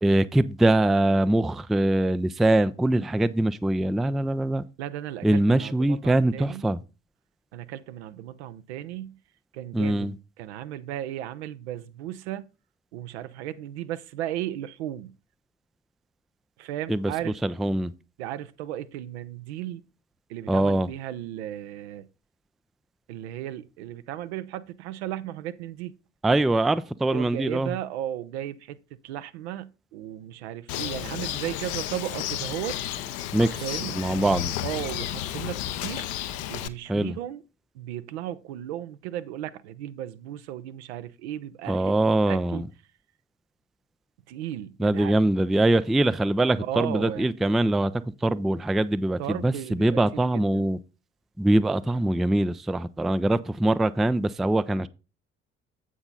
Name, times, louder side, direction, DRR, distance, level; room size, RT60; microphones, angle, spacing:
voice 1, 0.0-4.6 5.2-6.8 9.7-10.1 16.9-17.1 17.4-17.9 20.5-20.9 26.2-27.7 33.3-33.6 33.9-34.5 36.9-37.1 41.7-42.7 44.8-47.9 48.2-50.8 51.4-54.9, right 1 dB, ahead, 0.3 m, -23 dB
voice 2, 4.8-6.7 7.5-9.2 9.5-12.5 12.9-15.1 16.6-17.4 18.2-19.8 20.3-22.1 23.1-25.9 27.1-32.8 33.6-34.3 34.6-36.1 36.5-37.4 37.7-41.9 42.3-42.6 44.3-45.2 46.6-47.3 49.2-50.7, right 12 dB, 70° right, 0.6 m, -35 dB
Bird, 30.7-36.7, left 12 dB, 65° left, 0.7 m, -32 dB
7.8 x 6.2 x 3.9 m
figure-of-eight pair, 45°, 34 cm